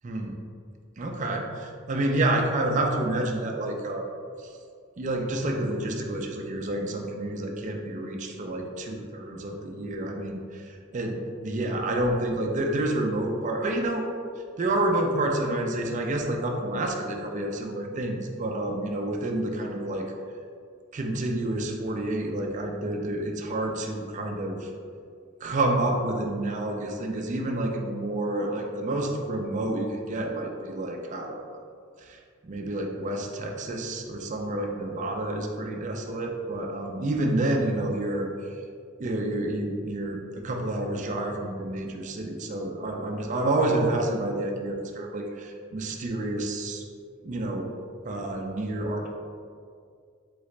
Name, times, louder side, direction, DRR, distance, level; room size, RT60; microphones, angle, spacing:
voice 1, 0.0-0.4 1.0-4.1 4.4-4.5 5.0-14.1 14.6-20.1 20.9-24.7 25.4-31.4 32.0-38.3 39.0-46.8 47.2-47.7 48.0-49.1, right 1 dB, 40° right, 2 dB, 0.4 m, -29 dB
3.9 x 3.7 x 3.2 m, 2.2 s
head